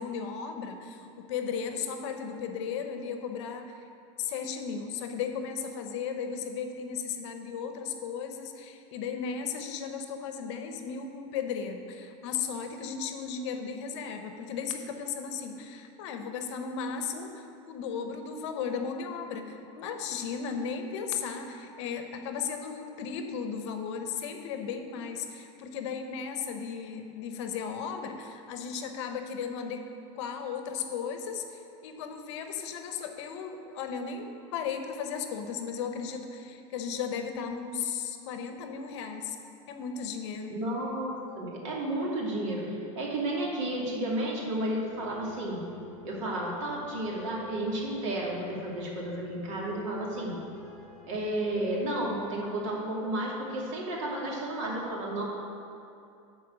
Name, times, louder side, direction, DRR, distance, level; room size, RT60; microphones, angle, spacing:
voice 1, 0.0-3.7 4.2-29.8 30.2-39.4 39.7-40.6, left 6 dB, 60° left, 6 dB, 0.9 m, -35 dB
voice 2, 40.5-45.7 46.0-50.4 51.1-55.2, right 1 dB, 65° right, -3 dB, 2.4 m, -32 dB
sound 1, 44.8-52.4, left 4 dB, 5° left, 2.0 m, -50 dB
11.0 x 4.6 x 6.1 m, 2.6 s
supercardioid pair, 170°, 17 cm